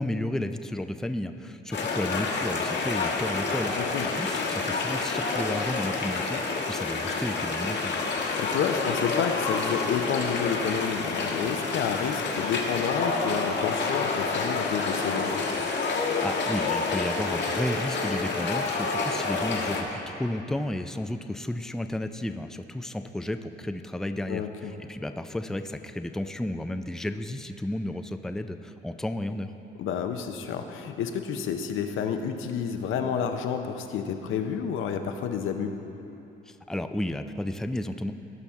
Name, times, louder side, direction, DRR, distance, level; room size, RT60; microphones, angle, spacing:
voice 1, 0.0-3.7 4.0-8.0 16.2-29.5 36.5-38.1, left 1 dB, 5° left, 8 dB, 0.4 m, -32 dB
sound 1, 1.7-19.8, left 4 dB, 65° left, 1.3 m, -28 dB
voice 2, 3.7-4.1 8.2-15.3 24.3-24.7 29.8-35.8, left 7 dB, 85° left, 6 dB, 0.7 m, -30 dB
17.0 x 5.8 x 3.6 m, 2.9 s
cardioid pair, 90°, 20 cm